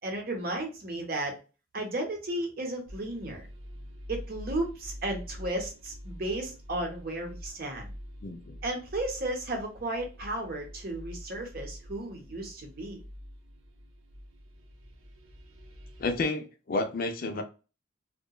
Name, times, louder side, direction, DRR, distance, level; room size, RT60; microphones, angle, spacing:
voice 1, 0.0-1.4 1.7-3.4 4.1-7.9 8.6-13.0, right 1 dB, 45° right, 0.7 m, -34 dB
sound 1, 2.9-16.3, equal, 80° right, 0.6 m, -46 dB
voice 2, 8.2-8.6 16.0-17.4, left 3 dB, 45° left, 0.4 m, -31 dB
2.8 x 2.2 x 2.2 m
head